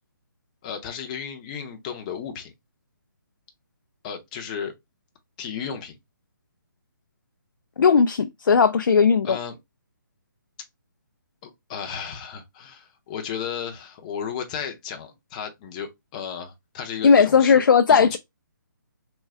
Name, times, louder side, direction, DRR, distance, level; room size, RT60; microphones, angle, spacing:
voice 1, 0.6-2.5 4.0-4.7 5.4-5.9 9.2-9.6 11.4-17.6 17.9-18.2, left 7 dB, 20° left, 0.6 m, -34 dB
voice 2, 7.8-9.4 17.0-18.2, left 6 dB, 70° left, 0.4 m, -17 dB
3.7 x 2.2 x 3.3 m
hypercardioid pair, 155°, 11 cm